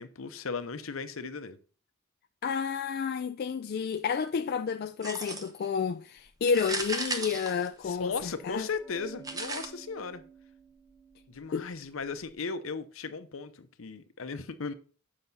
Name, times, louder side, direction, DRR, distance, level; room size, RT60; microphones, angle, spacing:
voice 1, 0.0-1.6 7.8-10.2 11.3-14.7, left 4 dB, 75° left, 0.7 m, -36 dB
voice 2, 2.4-8.7 11.5-11.7, left 6 dB, 50° left, 0.3 m, -30 dB
sound 1, 5.0-5.7 6.5-8.2 9.2-9.7, right 2 dB, 20° right, 0.8 m, -35 dB
Glass, 6.2-12.3, right 5 dB, 10° left, 0.9 m, -54 dB
7.5 x 5.7 x 4.0 m
head